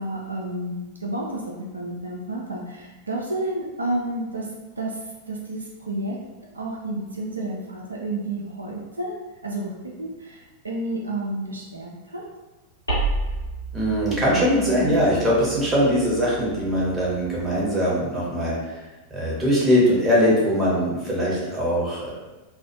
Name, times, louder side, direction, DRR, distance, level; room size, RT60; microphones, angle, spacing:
voice 1, 0.0-6.2 6.5-9.1 9.4-12.3, right 1 dB, 80° right, -2 dB, 0.3 m, -31 dB
sound 1, 12.9-17.7, right 3 dB, 85° left, 1.0 m, -32 dB
voice 2, 13.7-18.6 19.1-22.1, equal, 15° right, -6 dB, 0.9 m, -21 dB
2.4 x 2.0 x 2.6 m, 1.1 s
figure-of-eight pair, 90°, 0 cm